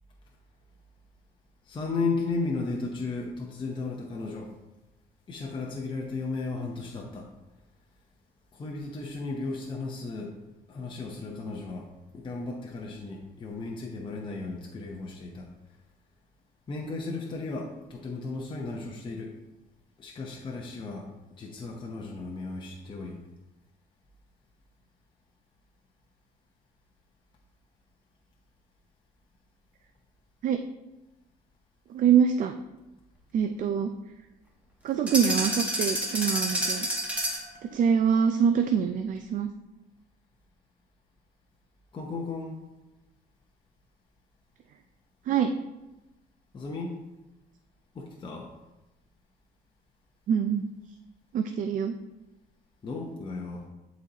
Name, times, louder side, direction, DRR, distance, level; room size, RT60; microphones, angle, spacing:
voice 1, 1.7-4.5 5.3-7.3 8.5-10.4 10.7-11.9 12.1-15.5 16.7-19.3 20.0-21.1 21.4-23.2 41.9-42.6 46.5-47.0 47.9-48.5 52.8-53.7, left 3 dB, 30° left, -1 dB, 0.8 m, -34 dB
voice 2, 31.9-32.5 33.3-33.9 34.8-36.9 37.7-39.5 45.3-45.5 50.3-50.6 51.3-51.9, right 7 dB, 50° right, 7 dB, 0.4 m, -24 dB
sound 1, 35.1-37.5, right 1 dB, 10° right, 1.4 m, -29 dB
11.0 x 4.0 x 2.9 m, 1.0 s
cardioid pair, 110°, 17 cm